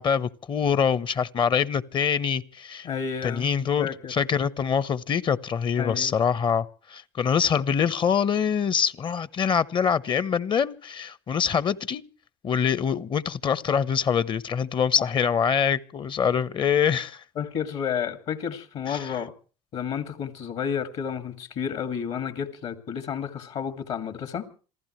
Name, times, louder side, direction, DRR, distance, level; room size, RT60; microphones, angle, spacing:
voice 1, 0.0-2.9 3.2-12.0 12.4-17.2 18.9-19.1, left 7 dB, 40° left, 1.0 m, -24 dB
voice 2, 2.8-3.5 3.8-4.1 5.8-6.1 15.0-15.1 17.4-19.3 19.7-24.5, left 7 dB, 60° left, 2.4 m, -31 dB
27.0 x 15.0 x 3.2 m
hypercardioid pair, 70°, 12 cm